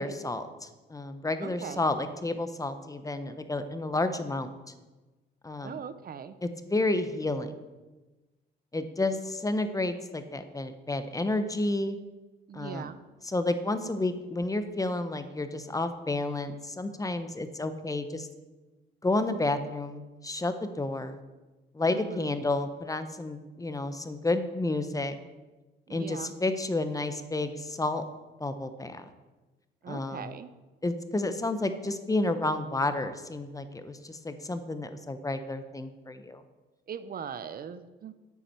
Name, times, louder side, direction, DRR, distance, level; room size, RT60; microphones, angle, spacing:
voice 1, 0.0-4.5 5.4-5.8 6.4-7.5 8.7-12.0 12.5-12.9 13.2-18.3 19.0-21.2 21.7-25.2 25.9-28.0 28.4-29.0 29.9-30.3 30.8-36.4, left 2 dB, 15° left, 9 dB, 0.8 m, -31 dB
voice 2, 1.4-1.9 5.6-6.3 12.5-13.0 21.9-22.3 25.9-26.3 29.8-30.5 36.9-38.1, right 7 dB, 50° right, 12 dB, 0.6 m, -40 dB
9.8 x 8.2 x 4.4 m, 1.2 s
cardioid pair, 90°, 20 cm